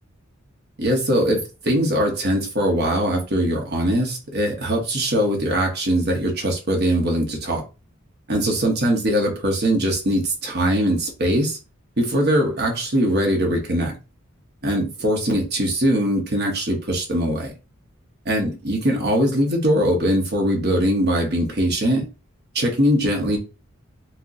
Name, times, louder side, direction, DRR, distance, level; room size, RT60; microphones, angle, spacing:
voice 1, 0.8-7.6 8.3-11.6 12.0-13.9 14.6-17.5 18.3-22.0 22.5-23.4, equal, 50° right, 1.0 m, -21 dB
4.2 x 2.1 x 2.6 m
head